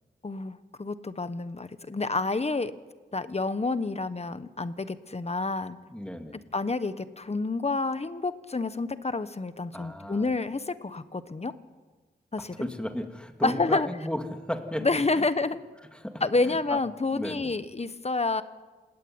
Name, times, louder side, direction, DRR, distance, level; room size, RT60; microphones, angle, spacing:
voice 1, 0.2-2.7 3.1-5.8 6.5-11.5 12.3-12.7 13.4-13.9 14.8-15.6 16.2-18.4, left 3 dB, 35° left, 12 dB, 1.5 m, -29 dB
voice 2, 5.9-6.4 9.7-10.3 12.6-15.3 15.8-16.8 17.1-17.6, left 1 dB, 5° left, 5 dB, 3.0 m, -35 dB
27.5 x 18.0 x 9.8 m, 1.3 s
wide cardioid pair, 70°, 18 cm